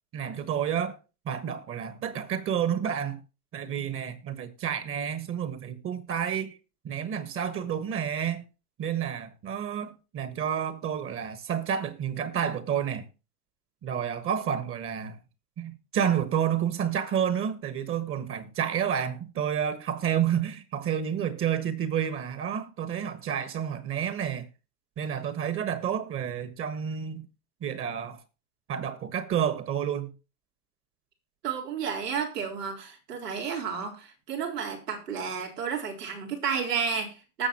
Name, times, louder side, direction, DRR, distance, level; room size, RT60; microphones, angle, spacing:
voice 1, 0.1-1.0 1.2-3.2 3.5-6.6 6.8-8.4 8.8-13.1 13.8-15.2 15.6-24.5 25.0-27.3 27.6-28.2 28.7-30.1, right 8 dB, 25° right, 1.4 m, -30 dB
voice 2, 31.4-37.5, right 6 dB, 90° right, 4.0 m, -31 dB
19.5 x 6.8 x 2.9 m
hypercardioid pair, 125°, 46 cm